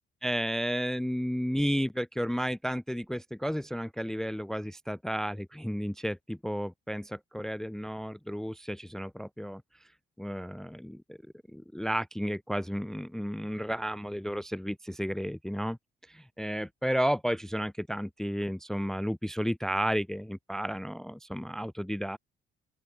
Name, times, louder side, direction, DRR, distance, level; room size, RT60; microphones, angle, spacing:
voice 1, 0.2-9.6 10.2-11.2 11.5-15.8 16.1-22.2, equal, ahead, 0.6 m, -32 dB
open air
cardioid pair, 90°, 20 cm